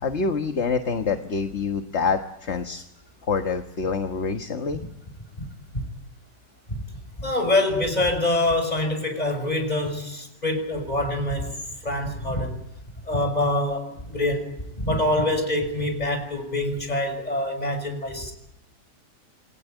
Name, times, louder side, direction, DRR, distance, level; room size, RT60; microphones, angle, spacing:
voice 1, 0.0-2.8 3.3-4.8, left 5 dB, 40° left, 6 dB, 1.6 m, -26 dB
voice 2, 7.2-11.6 11.8-12.6 13.1-14.5 14.8-18.3, left 1 dB, 20° left, 5 dB, 6.3 m, -25 dB
28.5 x 20.5 x 9.3 m, 0.89 s
omnidirectional pair, 1.9 m